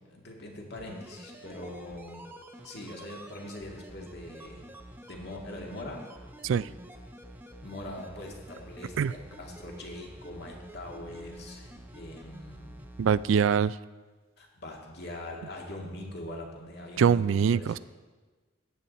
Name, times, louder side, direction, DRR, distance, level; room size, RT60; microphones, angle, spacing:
voice 1, 0.1-2.3 2.6-4.7 5.1-6.0 7.6-12.8 14.4-17.8, left 1 dB, 55° left, 0 dB, 1.9 m, -42 dB
sound 1, 0.7-13.2 13.5-13.6, right 1 dB, 10° right, 0.7 m, -48 dB
voice 2, 13.0-13.8 17.0-17.8, right 7 dB, 70° right, 18 dB, 0.3 m, -23 dB
14.0 x 9.5 x 4.1 m, 1.3 s
head